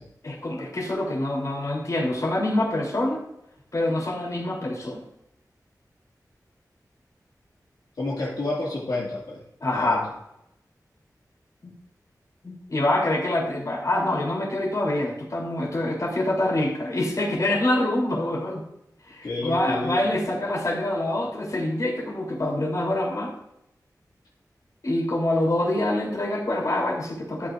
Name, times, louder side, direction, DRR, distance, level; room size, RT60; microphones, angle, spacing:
voice 1, 0.2-3.2 3.7-5.0 9.6-10.0 11.6-11.7 12.4-18.7 19.1-23.3 24.8-27.5, left 1 dB, 55° left, -1 dB, 3.2 m, -25 dB
voice 2, 8.0-9.4 9.7-10.0 19.2-20.1, left 2 dB, 80° left, -6 dB, 2.1 m, -30 dB
13.0 x 9.0 x 2.5 m, 0.81 s
wide cardioid pair, 70°, 7 cm